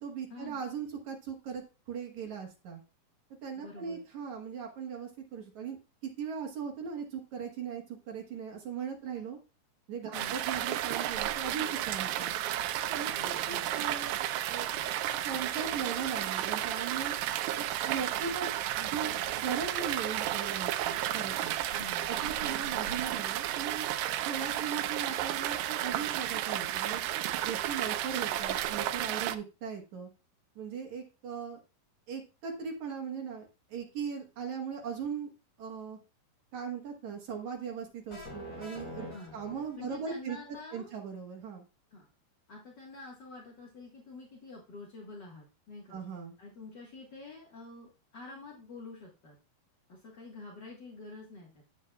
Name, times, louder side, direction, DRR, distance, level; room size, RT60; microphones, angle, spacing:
voice 1, 0.0-2.8 3.4-5.8 6.0-9.4 9.9-12.3 12.9-14.2 14.5-14.7 15.2-17.1 17.6-18.5 18.7-21.5 22.1-23.9 24.2-27.0 27.4-30.1 30.6-31.6 32.1-35.3 35.6-36.0 36.5-41.6 45.9-46.3, right 6 dB, 60° right, 1 dB, 2.4 m, -39 dB
voice 2, 3.6-4.0 10.1-10.4 13.1-13.7 21.7-22.1 39.1-39.3 39.7-40.9 41.9-42.1 42.5-46.0 46.4-49.3 49.9-51.6, left 3 dB, 55° left, -2 dB, 1.2 m, -47 dB
sound 1, 10.1-29.4, right 12 dB, 85° right, 2.3 m, -32 dB
sound 2, 38.1-40.1, left 1 dB, 20° left, 5.4 m, -45 dB
10.5 x 8.3 x 2.3 m, 0.30 s
omnidirectional pair, 4.4 m